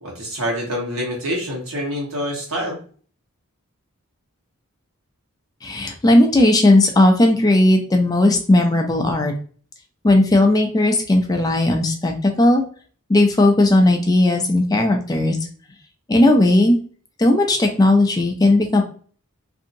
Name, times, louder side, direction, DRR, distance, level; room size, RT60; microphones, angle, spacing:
voice 1, 0.0-2.8, equal, 75° right, -2 dB, 1.2 m, -26 dB
voice 2, 5.6-9.3 10.0-12.6 13.1-15.4 16.1-16.8 17.2-18.8, left 1 dB, 20° left, 3 dB, 0.4 m, -16 dB
2.7 x 2.7 x 2.6 m, 0.43 s
head